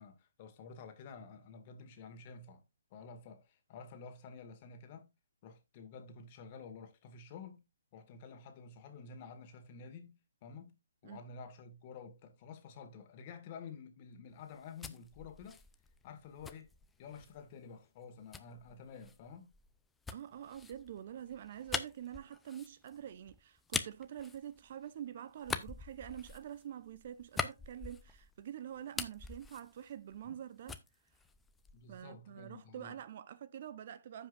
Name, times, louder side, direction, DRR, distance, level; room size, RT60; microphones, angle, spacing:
voice 1, 0.0-2.6 2.9-5.1 5.4-7.6 7.9-15.6 16.0-16.7 17.0-19.5 30.2-30.3 31.7-33.0, left 5 dB, 35° left, 1.8 m, -51 dB
sound 1, 14.4-17.4 18.3-25.0 25.4-28.4 28.7-30.4 30.7-32.0, left 5 dB, 10° left, 0.6 m, -44 dB
voice 2, 20.1-30.8 31.9-34.3, right 10 dB, 45° right, 0.6 m, -46 dB
15.0 x 5.4 x 2.5 m
hypercardioid pair, 145°, 0 cm